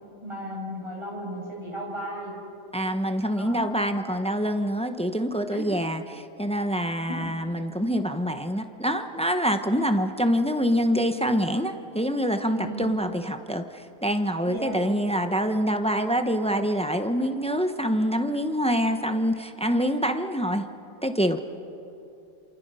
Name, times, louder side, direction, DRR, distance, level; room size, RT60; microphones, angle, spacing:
voice 1, 0.2-2.3 3.3-3.7 5.5-5.7 7.1-7.3 12.5-12.9 14.4-14.8, right 1 dB, 15° right, -3 dB, 6.6 m, -35 dB
voice 2, 2.7-20.7 21.0-21.4, equal, 5° left, 8 dB, 0.5 m, -26 dB
28.5 x 27.5 x 5.6 m, 2.7 s
omnidirectional pair, 1.8 m